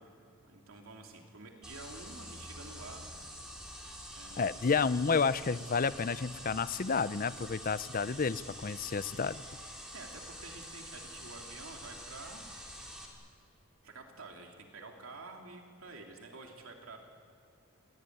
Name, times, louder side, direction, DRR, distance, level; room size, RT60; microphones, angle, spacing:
voice 1, 0.2-3.1 4.1-4.7 9.9-12.4 13.8-17.0, right 3 dB, 85° right, 2 dB, 2.6 m, -49 dB
sound 1, 1.6-13.1, equal, 5° right, 3.5 m, -47 dB
voice 2, 4.4-9.4, left 5 dB, 40° left, 16 dB, 0.6 m, -30 dB
29.5 x 18.0 x 9.2 m, 2.5 s
head